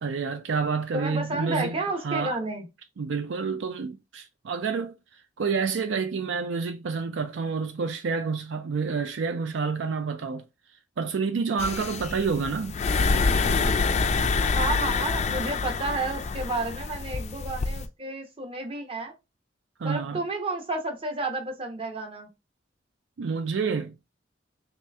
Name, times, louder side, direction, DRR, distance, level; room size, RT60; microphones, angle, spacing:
voice 1, 0.0-1.7 2.0-2.4 3.0-10.5 11.0-12.8 19.8-20.2 23.2-23.9, right 5 dB, 75° right, 0.4 m, -29 dB
voice 2, 0.9-2.7 14.5-19.1 19.8-22.3, right 2 dB, 30° right, 0.9 m, -31 dB
sound 1, 11.6-17.9, left 4 dB, 35° left, 0.4 m, -26 dB
3.2 x 2.9 x 3.4 m
head